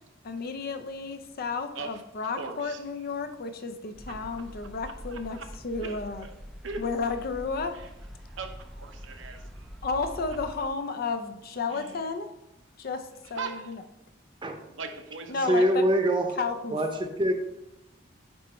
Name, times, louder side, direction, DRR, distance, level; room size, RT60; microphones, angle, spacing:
voice 1, 0.2-5.4 5.6-6.3 6.8-7.7 9.8-12.3 12.8-13.8 15.3-15.8 16.4-16.8, left 4 dB, 50° left, 8 dB, 0.6 m, -32 dB
voice 2, 1.7-2.8 4.1-4.3 4.8-5.5 5.8-6.3 6.6-6.8 7.7-7.9 8.2-9.8 11.7-12.0 13.3-13.8 14.8-15.6, right 4 dB, 75° right, 5 dB, 0.8 m, -40 dB
sound 1, 3.9-10.7, equal, ahead, 0.5 m, -44 dB
voice 3, 15.5-16.4 16.7-17.3, right 1 dB, 25° right, 5 dB, 0.8 m, -24 dB
8.8 x 3.1 x 4.3 m, 0.90 s
head